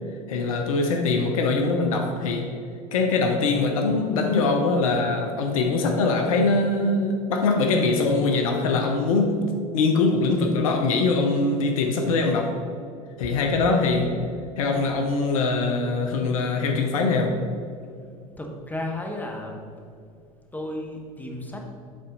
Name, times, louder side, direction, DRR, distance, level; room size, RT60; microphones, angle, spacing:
voice 1, 0.3-2.5 2.9-9.4 9.7-12.5 13.2-14.2 14.6-17.4, left 3 dB, 70° left, 4 dB, 0.7 m, -22 dB
voice 2, 18.4-19.6 20.5-21.7, left 1 dB, 10° left, 1 dB, 1.2 m, -33 dB
8.5 x 4.0 x 4.0 m, 2.4 s
figure-of-eight pair, 75°, 18 cm